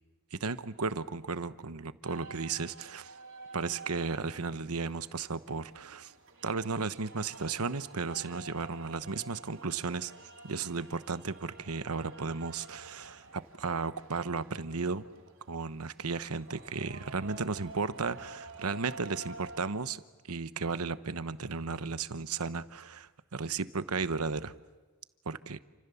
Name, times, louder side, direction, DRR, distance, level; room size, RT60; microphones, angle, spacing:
voice 1, 0.3-3.1 3.5-6.1 6.4-10.1 10.4-15.0 15.5-20.0 20.3-24.5 25.2-25.6, right 4 dB, 85° right, 13 dB, 1.0 m, -34 dB
sound 1, 2.0-19.7, right 3 dB, 60° right, 4.3 m, -50 dB
29.0 x 26.0 x 7.1 m, 1.3 s
head